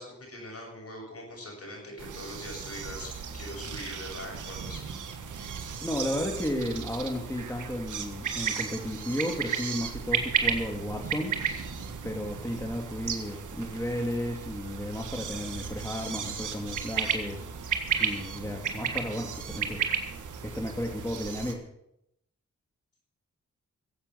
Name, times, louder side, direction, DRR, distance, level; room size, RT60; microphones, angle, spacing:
voice 1, 0.0-4.9, left 1 dB, 50° left, 0 dB, 7.4 m, -42 dB
sound 1, 2.0-21.5, right 7 dB, 85° right, 1.6 m, -34 dB
sound 2, 2.5-21.2, right 3 dB, 40° right, 3.2 m, -48 dB
voice 2, 5.8-11.3 12.0-17.5 18.0-19.8 20.4-21.6, left 1 dB, 10° left, 1 dB, 2.5 m, -33 dB
15.5 x 8.2 x 8.1 m, 0.79 s
cardioid pair, 50°, 30 cm